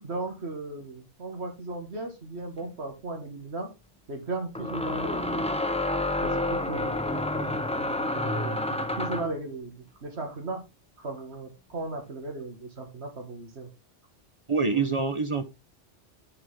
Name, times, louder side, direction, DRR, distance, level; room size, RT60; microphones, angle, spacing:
voice 1, 0.0-3.7 4.1-5.6 6.2-10.6 11.0-13.7 14.7-14.8, right 2 dB, 60° right, 4 dB, 2.2 m, -36 dB
sound 1, 2.6-2.7 4.5-9.4, left 1 dB, 5° left, 0.5 m, -29 dB
voice 2, 14.5-15.5, right 4 dB, 30° right, 10 dB, 0.7 m, -26 dB
9.4 x 6.1 x 3.7 m, 0.25 s
omnidirectional pair, 1.2 m